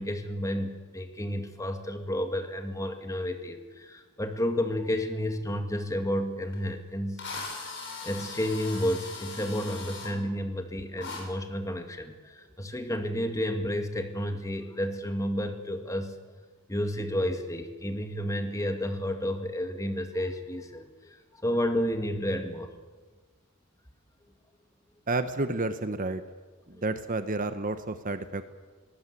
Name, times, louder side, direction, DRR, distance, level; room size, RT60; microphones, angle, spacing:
voice 1, 0.0-7.6 8.0-16.2 16.7-22.7 26.7-26.8, equal, 15° left, 6 dB, 2.2 m, -31 dB
Drill, 6.5-6.6 7.2-10.1 11.0-11.2, left 4 dB, 55° left, 7.3 m, -39 dB
voice 2, 25.1-26.2 26.7-28.5, right 2 dB, 40° right, 10 dB, 1.0 m, -30 dB
22.5 x 20.0 x 8.3 m, 1.4 s
head